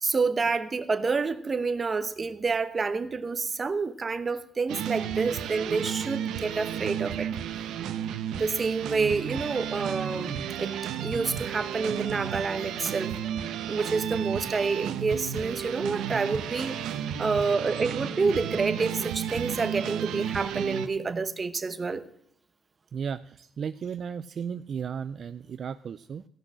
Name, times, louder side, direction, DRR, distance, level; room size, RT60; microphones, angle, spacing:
voice 1, 0.0-7.3 8.3-10.3 10.6-13.2 13.7-22.0, right 4 dB, 35° right, 0.9 m, -28 dB
sound 1, 4.7-20.9, right 9 dB, 85° right, 0.8 m, -33 dB
voice 2, 22.9-26.3, right 7 dB, 55° right, 0.4 m, -35 dB
16.0 x 6.1 x 6.3 m
cardioid pair, 90°, 0 cm